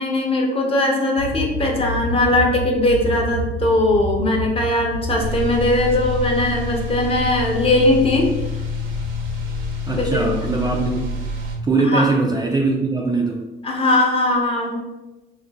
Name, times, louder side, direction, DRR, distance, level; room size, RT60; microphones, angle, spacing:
voice 1, 0.0-8.3 10.0-10.4 11.8-12.1 13.6-14.8, left 1 dB, 25° left, 0 dB, 0.7 m, -19 dB
sound 1, 1.2-12.5, right 1 dB, 80° left, 0.5 m, -31 dB
sound 2, 5.2-11.6, left 3 dB, 70° right, 0.7 m, -27 dB
voice 2, 9.9-11.1 11.6-13.5, right 3 dB, 20° right, -1 dB, 0.3 m, -21 dB
2.6 x 2.5 x 4.0 m, 1.1 s
cardioid pair, 120°, 21 cm